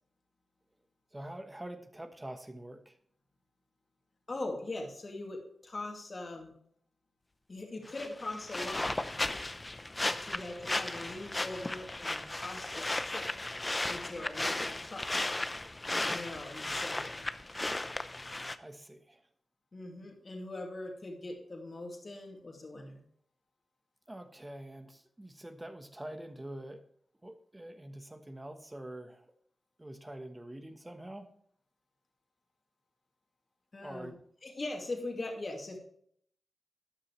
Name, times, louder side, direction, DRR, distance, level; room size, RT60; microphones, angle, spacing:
voice 1, 1.1-3.0 18.3-19.3 24.1-26.8 27.2-29.3 29.8-31.3 33.8-34.2, right 1 dB, 15° right, 7 dB, 1.1 m, -45 dB
voice 2, 4.3-6.5 7.5-9.1 10.1-13.3 13.9-15.4 15.9-17.2 19.7-23.0 33.7-34.1 34.4-35.8, left 2 dB, 40° left, 1 dB, 2.5 m, -41 dB
sound 1, 7.9-18.6, left 2 dB, 20° left, 0.7 m, -35 dB
12.5 x 9.8 x 3.2 m, 0.64 s
wide cardioid pair, 105°, 0 cm